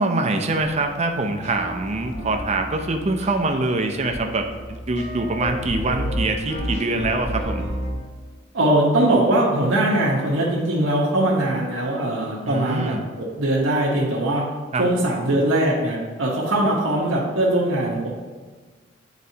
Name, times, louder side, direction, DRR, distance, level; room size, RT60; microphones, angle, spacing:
voice 1, 0.0-7.6 12.4-13.0 14.7-14.8, right 2 dB, 35° right, 4 dB, 0.6 m, -24 dB
sound 1, 0.6-7.9, equal, 65° left, 1.8 m, -32 dB
voice 2, 8.5-14.4 14.8-18.1, right 1 dB, 90° right, -4 dB, 1.1 m, -21 dB
9.5 x 4.0 x 2.8 m, 1.4 s
head